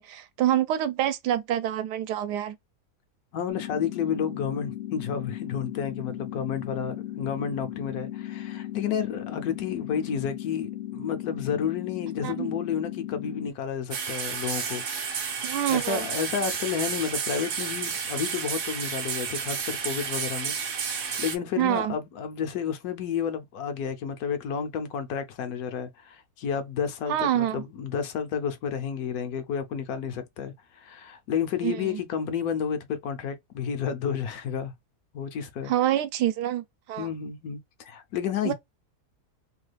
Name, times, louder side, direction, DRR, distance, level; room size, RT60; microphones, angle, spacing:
voice 1, 0.0-2.6 12.2-12.6 15.4-16.1 21.6-21.9 27.1-27.6 31.6-32.0 35.7-37.1 38.4-38.5, right 11 dB, 85° right, 1.2 m, -26 dB
voice 2, 3.3-14.8 15.4-34.7 35.1-35.7 37.0-38.5, left 7 dB, 75° left, 1.0 m, -31 dB
sound 1, 3.5-13.5, left 13 dB, 60° left, 0.6 m, -36 dB
sound 2, 13.9-21.4, right 6 dB, 60° right, 0.9 m, -31 dB
3.0 x 2.2 x 3.2 m
omnidirectional pair, 1.7 m